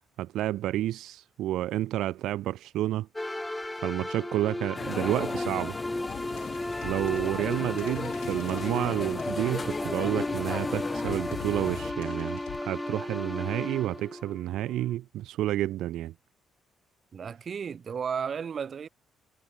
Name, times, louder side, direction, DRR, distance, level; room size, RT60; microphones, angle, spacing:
voice 1, 0.2-3.1 3.7-5.8 6.8-12.4 12.6-16.1, right 14 dB, 80° right, 0.7 m, -30 dB
sound 1, 3.2-15.0, left 1 dB, 10° left, 1.8 m, -35 dB
sound 2, 4.8-11.9, left 5 dB, 30° left, 1.4 m, -36 dB
sound 3, 6.1-10.1 11.0-12.6, left 15 dB, 90° left, 1.6 m, -46 dB
voice 2, 17.1-18.9, right 7 dB, 45° right, 2.8 m, -33 dB
cardioid pair, 110°, 0 cm